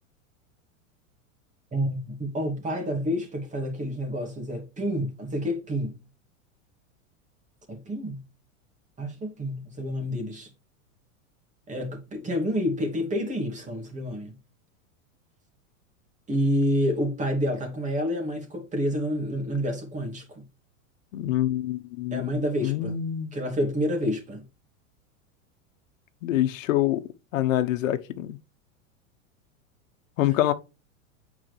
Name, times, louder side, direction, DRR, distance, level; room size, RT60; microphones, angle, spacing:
voice 1, 1.7-6.0 7.7-8.2 9.0-10.5 11.7-14.4 16.3-20.4 22.1-23.0 23.3-24.4, equal, 20° right, 2.5 m, -28 dB
voice 2, 21.1-23.3 26.2-27.0 27.3-28.4 30.2-30.5, left 13 dB, 75° left, 1.2 m, -26 dB
8.7 x 4.7 x 3.3 m
supercardioid pair, 130°, 40 cm